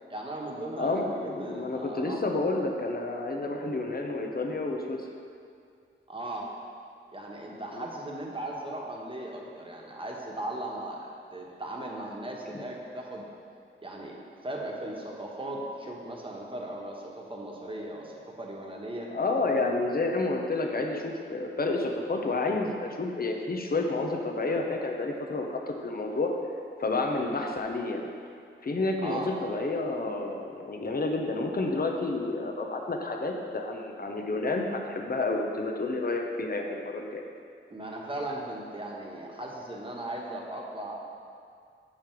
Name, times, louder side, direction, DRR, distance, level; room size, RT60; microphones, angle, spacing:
voice 1, 0.1-2.2 6.1-6.6 7.1-13.3 13.8-19.1 29.0-29.3 37.7-41.0, right 1 dB, 25° right, -2 dB, 1.3 m, -37 dB
voice 2, 0.8-5.0 7.7-7.8 12.5-12.6 19.1-26.3 26.8-28.1 28.6-37.2, left 2 dB, 45° left, 2 dB, 0.9 m, -30 dB
6.8 x 5.6 x 4.6 m, 2.3 s
cardioid pair, 60°, 21 cm